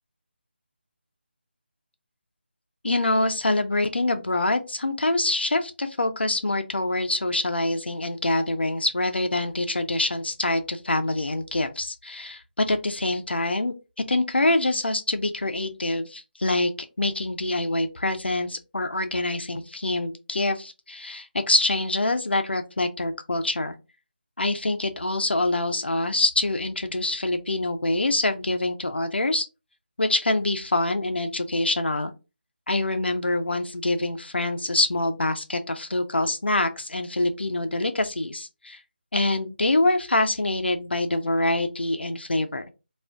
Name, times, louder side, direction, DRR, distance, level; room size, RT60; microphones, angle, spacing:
voice 1, 2.8-13.7 14.1-16.7 17.0-23.7 24.4-29.5 30.0-32.1 32.7-38.8 39.1-42.7, left 2 dB, 75° left, 7 dB, 0.4 m, -25 dB
2.4 x 2.3 x 3.2 m, 0.29 s
figure-of-eight pair, 155°, 6 cm